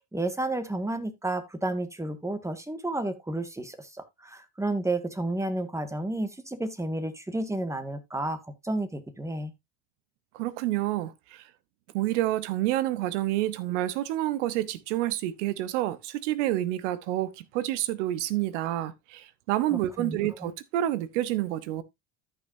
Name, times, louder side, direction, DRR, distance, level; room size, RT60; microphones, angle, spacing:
voice 1, 0.1-9.5 19.7-20.5, right 2 dB, 10° right, 1.9 m, -31 dB
voice 2, 10.3-11.4 11.9-21.8, right 14 dB, 80° right, 1.0 m, -28 dB
13.5 x 6.2 x 2.7 m
hypercardioid pair, 75°, 36 cm